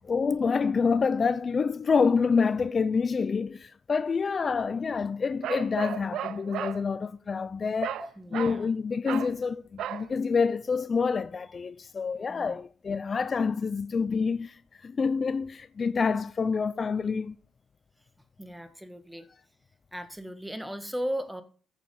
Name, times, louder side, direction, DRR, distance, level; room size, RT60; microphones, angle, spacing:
voice 1, 0.0-8.0 8.3-17.4, left 5 dB, 40° left, 0.5 m, -27 dB
Bark, 5.4-6.8 7.8-8.1 8.3-8.6 9.1-9.3 9.8-10.1, right 10 dB, 75° right, 0.7 m, -34 dB
voice 2, 8.0-8.6 12.3-12.6 18.4-19.3 19.9-21.4, equal, 5° right, 1.8 m, -36 dB
14.5 x 7.2 x 5.5 m
cardioid pair, 90°, 0 cm